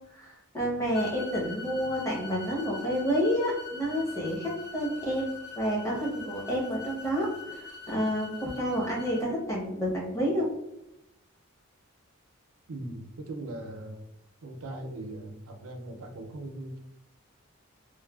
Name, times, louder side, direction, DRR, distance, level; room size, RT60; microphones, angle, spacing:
voice 1, 0.1-5.3 5.6-10.5, equal, 15° left, -4 dB, 0.7 m, -29 dB
sound 1, 0.9-9.2, left 5 dB, 50° left, 1.1 m, -43 dB
voice 2, 12.7-14.0 14.4-16.8, right 1 dB, 85° right, 4 dB, 0.5 m, -40 dB
3.1 x 2.1 x 2.3 m, 0.86 s
head